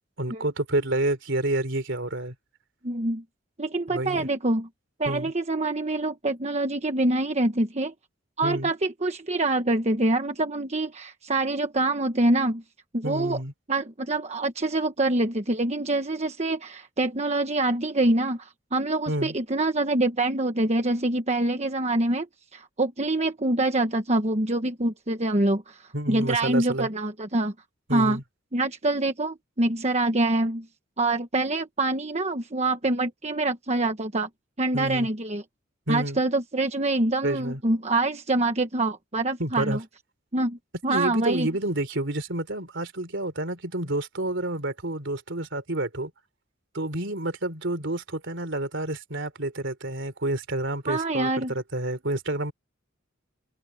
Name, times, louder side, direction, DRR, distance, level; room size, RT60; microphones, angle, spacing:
voice 1, 0.2-2.3 3.9-4.3 5.1-5.3 8.4-8.7 13.0-13.5 19.1-19.3 25.9-26.9 27.9-28.2 34.7-35.1 35.9-36.2 37.2-37.6 39.4-39.8 40.9-46.1 46.7-52.5, right 1 dB, 65° right, 3.7 m, -29 dB
voice 2, 2.8-3.2 3.6-4.7 5.0-7.9 8.4-12.6 12.9-13.4 13.7-22.3 22.5-27.5 27.9-28.2 28.5-30.7 31.0-34.3 34.6-35.4 35.9-39.8 40.3-41.5 50.9-51.5, right 2 dB, 35° right, 1.2 m, -25 dB
head